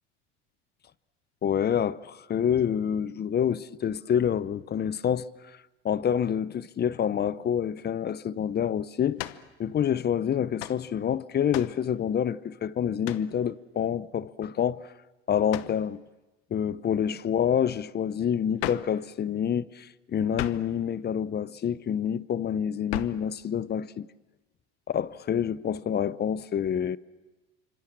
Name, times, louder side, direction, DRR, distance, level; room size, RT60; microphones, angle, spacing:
voice 1, 1.4-5.3 5.8-9.2 9.6-14.9 15.3-16.0 16.5-24.1 24.9-27.0, left 8 dB, 35° left, 0.8 m, -27 dB
sound 1, 9.2-9.5 10.6-10.8 11.5-11.8 13.0-13.3 15.5-15.8 18.6-19.0 20.3-20.7 22.9-23.3, left 15 dB, 80° left, 1.1 m, -35 dB
27.5 x 25.5 x 7.5 m
hypercardioid pair, 85°, 30 cm